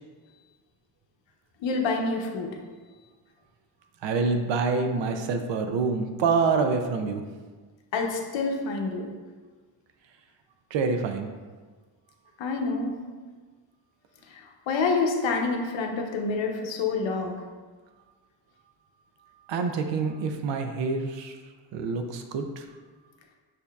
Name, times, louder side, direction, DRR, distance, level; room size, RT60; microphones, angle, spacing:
voice 1, 1.6-2.5 7.9-9.1 12.4-12.9 14.3-17.4, left 4 dB, 80° left, 2 dB, 0.7 m, -27 dB
voice 2, 4.0-7.2 10.7-11.3 19.5-21.4 21.7-22.7, right 4 dB, 75° right, 6 dB, 0.5 m, -26 dB
6.4 x 2.7 x 2.3 m, 1.4 s
wide cardioid pair, 155°, 44 cm